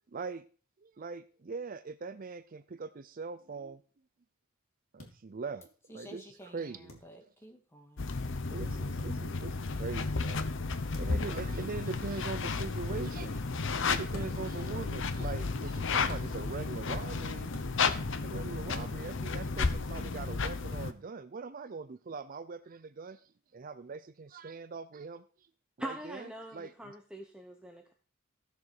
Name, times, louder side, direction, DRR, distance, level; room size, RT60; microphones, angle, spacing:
voice 1, 0.1-0.4 0.8-3.8 4.9-6.2 6.5-7.0 8.5-10.5 10.9-13.4 13.9-17.5 18.2-25.5 25.8-27.0, right 4 dB, 40° right, 13 dB, 0.5 m, -42 dB
sound 1, 5.0-5.1 6.9-7.1 9.0-9.1 10.9-11.2 12.5-12.7 14.1-14.5 16.1-16.3 17.5-17.7 19.6-19.8, left 1 dB, 85° left, 2.8 m, -46 dB
voice 2, 5.9-8.1, equal, 10° left, 3 dB, 2.0 m, -52 dB
sound 2, 8.0-20.9, left 4 dB, 60° left, 0.9 m, -33 dB
voice 3, 25.8-27.9, right 1 dB, 5° right, 2 dB, 1.0 m, -43 dB
15.0 x 6.9 x 4.8 m, 0.39 s
head